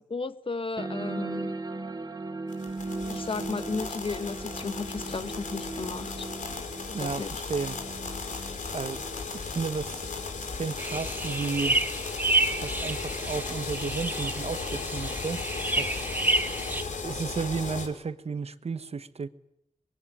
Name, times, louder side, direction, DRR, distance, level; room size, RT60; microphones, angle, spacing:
voice 1, 0.1-1.5 3.1-6.3 6.9-7.3, left 4 dB, 40° left, 1.4 m, -34 dB
sound 1, 0.8-11.8, right 2 dB, 30° right, 2.3 m, -38 dB
sound 2, 2.5-17.9, left 4 dB, 75° left, 5.0 m, -36 dB
voice 2, 6.9-7.8 8.2-9.0 9.3-10.1 10.4-11.8 12.6-15.4 15.8-16.5 17.0-19.3, right 5 dB, 50° right, 1.2 m, -33 dB
sound 3, 10.8-16.8, right 2 dB, 15° right, 2.1 m, -30 dB
25.5 x 22.5 x 10.0 m
wide cardioid pair, 115°, 13 cm